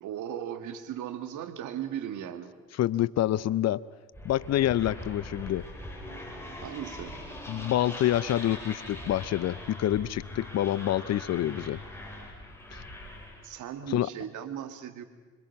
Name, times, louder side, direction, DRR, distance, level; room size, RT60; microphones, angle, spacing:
voice 1, 0.0-2.5 6.6-7.2 12.7-12.8 13.4-15.0, right 10 dB, 65° right, 8 dB, 1.9 m, -37 dB
voice 2, 2.7-3.8 4.2-5.6 7.5-11.8 12.7-12.9 13.9-14.1, left 12 dB, 55° left, 20 dB, 0.7 m, -27 dB
sound 1, 4.1-13.5, left 1 dB, 10° left, 7.9 m, -42 dB
26.0 x 25.0 x 5.9 m, 1.4 s
hypercardioid pair, 45°, 32 cm